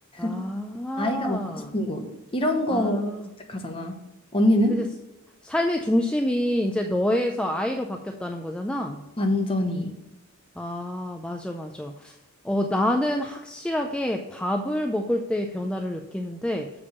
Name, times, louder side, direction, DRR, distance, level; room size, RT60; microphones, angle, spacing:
voice 1, 0.2-1.7 2.7-3.3 4.7-4.9 5.4-9.0 10.6-12.2 12.4-16.7, left 1 dB, 5° left, 3 dB, 0.4 m, -27 dB
voice 2, 1.0-2.1 2.3-3.0 3.5-4.0 4.3-4.8 9.2-9.9, left 1 dB, 25° left, 4 dB, 1.0 m, -24 dB
6.9 x 5.2 x 6.7 m, 0.99 s
head